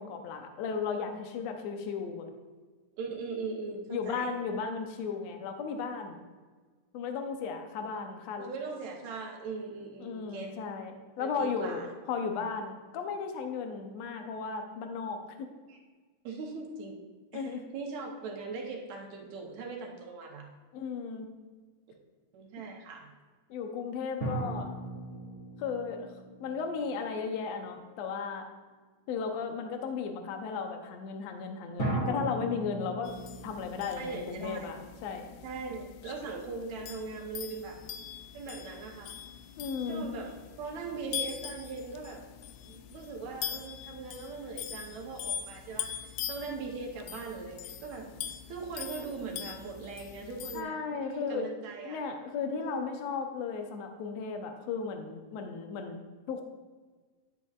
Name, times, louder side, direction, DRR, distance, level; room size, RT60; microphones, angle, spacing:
voice 1, 0.0-2.3 3.9-6.2 6.9-8.5 10.0-11.8 12.1-15.5 17.3-17.6 20.7-21.3 23.5-24.7 25.6-26.1 26.4-28.5 29.1-33.1 33.4-35.3 39.6-40.1 50.5-51.5 51.8-56.4, left 5 dB, 70° left, 5 dB, 1.7 m, -35 dB
voice 2, 3.0-4.3 8.4-10.5 11.2-11.9 15.7-15.8 16.2-17.0 17.3-20.5 22.3-23.1 34.0-34.7 35.4-37.8 38.3-39.1 39.9-40.3 40.6-42.2 42.7-45.9 46.3-48.1 48.5-52.0 52.5-52.9, right 4 dB, 70° right, 0 dB, 2.1 m, -40 dB
sound 1, 24.2-27.6 31.8-35.1, right 1 dB, 20° left, 2.2 m, -37 dB
sound 2, 33.0-50.6, left 9 dB, 85° left, 2.2 m, -42 dB
10.5 x 8.0 x 2.4 m, 1.4 s
omnidirectional pair, 3.7 m